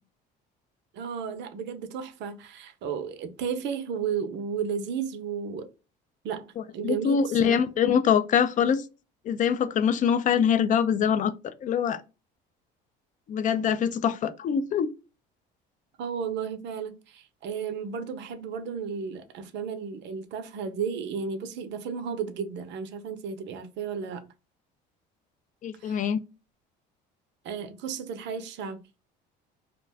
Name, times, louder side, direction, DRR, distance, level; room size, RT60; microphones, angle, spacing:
voice 1, 0.9-5.7 6.2-6.5 6.7-7.6 16.0-24.3 25.8-26.0 27.4-28.8, right 6 dB, 60° right, 0.6 m, -33 dB
voice 2, 6.8-8.8 9.3-12.0 13.3-14.9 25.6-26.2, left 8 dB, 40° left, 0.4 m, -24 dB
2.4 x 2.2 x 3.3 m
supercardioid pair, 90°, 20 cm